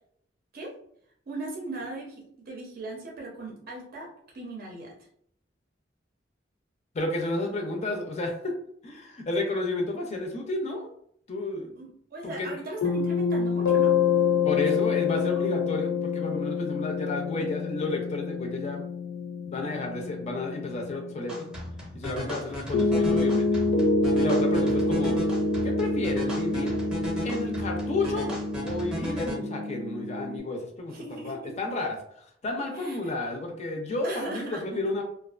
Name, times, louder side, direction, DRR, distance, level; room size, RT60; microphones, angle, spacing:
voice 1, 1.3-4.1 4.3-4.9 11.8-13.9 14.8-15.0 15.3-15.4 30.9-31.6 32.7-33.1 34.0-34.6, right 2 dB, 55° right, -1 dB, 0.5 m, -38 dB
voice 2, 6.9-8.5 8.8-10.9 11.3-11.7 12.2-12.6 14.4-18.8 19.4-21.5 21.9-23.7 24.2-25.2 25.6-26.8 27.2-28.3 28.6-31.0 31.2-35.0, left 2 dB, 35° left, 2 dB, 0.4 m, -31 dB
sound 1, 12.8-21.5 22.7-30.4, left 4 dB, 90° left, 0.6 m, -27 dB
sound 2, 21.3-29.3, equal, 5° right, 0.6 m, -36 dB
2.4 x 2.2 x 2.3 m, 0.67 s
head